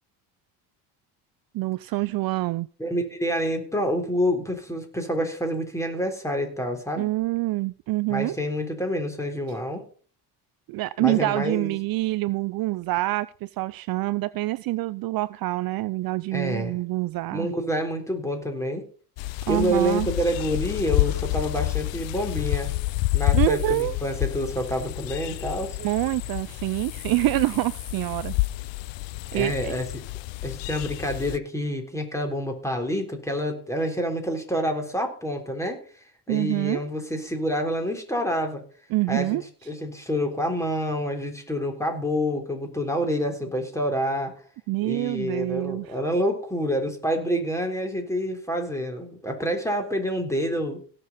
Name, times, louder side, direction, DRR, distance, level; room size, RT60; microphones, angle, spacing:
voice 1, 1.5-2.7 7.0-8.4 10.7-17.5 19.5-20.1 23.3-24.0 25.8-28.3 29.3-29.7 36.3-36.8 38.9-39.4 44.7-46.0, right 19 dB, 55° right, 0.5 m, -26 dB
voice 2, 2.8-7.1 8.1-9.8 11.0-11.8 16.3-16.8 17.3-18.8 19.5-22.7 23.1-25.8 29.3-30.0 30.4-35.8 36.3-38.6 39.1-44.3 44.8-50.8, equal, 5° left, 3.7 m, -28 dB
sound 1, 19.2-31.4, left 20 dB, 75° left, 0.7 m, -29 dB
17.5 x 6.7 x 4.1 m
supercardioid pair, 95°, 43 cm